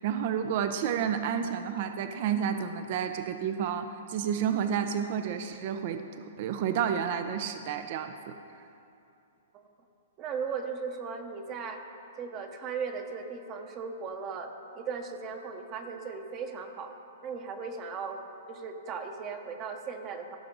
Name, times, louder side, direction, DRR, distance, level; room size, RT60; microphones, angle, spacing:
voice 1, 0.0-8.4, right 8 dB, 50° right, 8 dB, 0.6 m, -30 dB
voice 2, 10.2-11.8 12.2-16.9 17.2-18.2 18.5-20.4, right 5 dB, 30° right, 5 dB, 0.9 m, -37 dB
16.0 x 6.0 x 3.8 m, 2.7 s
hypercardioid pair, 135°, 0 cm